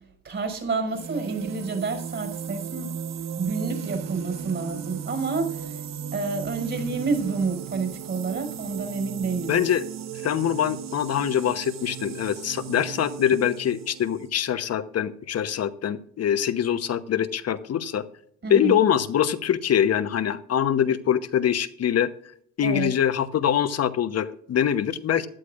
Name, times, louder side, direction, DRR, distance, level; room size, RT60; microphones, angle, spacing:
voice 1, 0.2-2.9 3.4-5.8 6.1-9.6 18.4-18.8 22.6-22.9, right 4 dB, 40° right, 5.7 m, -29 dB
sound 1, 0.9-14.3, right 8 dB, 60° right, 0.9 m, -36 dB
voice 2, 9.5-9.8 10.2-18.0 18.5-22.1 22.6-25.3, left 9 dB, 55° left, 1.0 m, -24 dB
16.5 x 11.5 x 2.5 m
cardioid pair, 90°, 30 cm